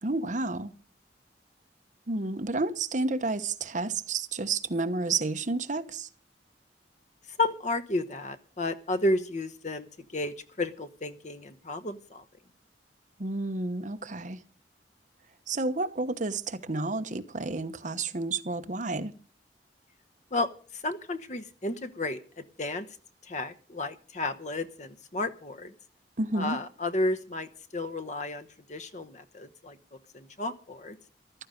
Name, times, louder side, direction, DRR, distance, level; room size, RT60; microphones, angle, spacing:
voice 1, 0.0-0.7 2.1-6.1 13.2-14.4 15.5-19.1 26.2-26.6, right 3 dB, 45° right, 1.0 m, -30 dB
voice 2, 7.3-9.9 10.1-12.2 20.3-22.9 23.2-25.7 26.3-29.8 30.1-31.0, left 2 dB, 40° left, 1.0 m, -32 dB
14.5 x 13.0 x 5.2 m
head